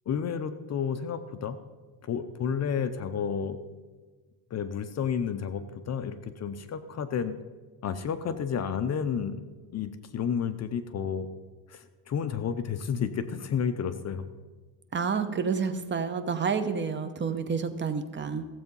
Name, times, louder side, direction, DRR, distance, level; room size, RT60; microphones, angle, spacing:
voice 1, 0.1-1.6 2.0-3.6 4.5-7.4 7.8-9.4 9.7-11.3 11.7-14.3, left 7 dB, 35° left, 11 dB, 0.6 m, -31 dB
voice 2, 14.9-18.4, right 5 dB, 25° right, 9 dB, 0.8 m, -29 dB
15.5 x 7.9 x 5.4 m, 1.4 s
cardioid pair, 140°, 45 cm